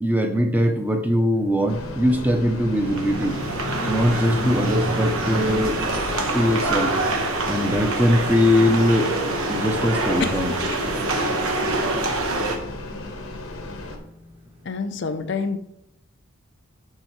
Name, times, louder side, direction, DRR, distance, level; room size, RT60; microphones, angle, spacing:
voice 1, 0.0-3.4 3.9-5.8 6.3-6.9 7.5-9.1 9.5-10.5, equal, 10° right, 0.7 m, -21 dB
sound 1, 1.3-14.7, equal, 25° right, 1.7 m, -36 dB
sound 2, 1.7-14.0, left 2 dB, 85° left, 1.0 m, -36 dB
sound 3, 2.7-12.6, right 2 dB, 85° right, 1.1 m, -26 dB
voice 2, 12.0-12.7 13.0-13.1 14.6-15.6, left 5 dB, 55° left, 0.5 m, -29 dB
11.5 x 4.3 x 3.1 m
head